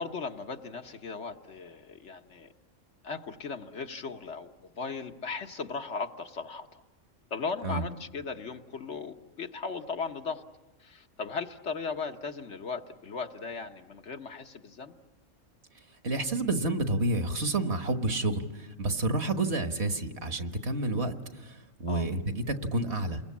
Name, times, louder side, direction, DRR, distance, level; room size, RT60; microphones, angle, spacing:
voice 1, 0.0-2.5 3.0-6.8 7.3-10.4 10.8-14.9 21.9-22.1, left 4 dB, 65° left, 5 dB, 1.5 m, -37 dB
voice 2, 16.0-23.2, right 2 dB, 55° right, 7 dB, 1.7 m, -29 dB
29.5 x 22.0 x 8.5 m, 1.1 s
omnidirectional pair, 1.3 m